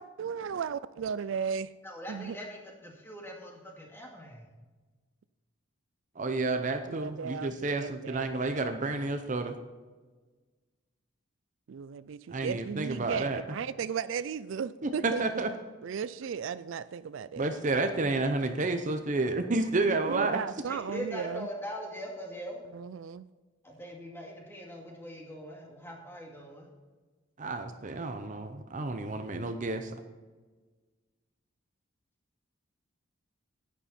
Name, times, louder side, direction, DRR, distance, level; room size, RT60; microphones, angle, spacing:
voice 1, 0.0-1.7 2.1-2.4 6.9-8.7 11.7-15.2 15.8-17.5 19.8-21.5 22.7-23.3, right 7 dB, 70° right, 16 dB, 0.4 m, -35 dB
voice 2, 1.8-4.5 20.7-22.6 23.6-26.7, equal, 10° left, -1 dB, 2.2 m, -42 dB
voice 3, 6.2-9.5 12.3-13.4 14.8-15.5 17.4-20.4 27.4-29.9, right 3 dB, 40° right, 7 dB, 0.7 m, -30 dB
11.0 x 9.8 x 4.3 m, 1.3 s
head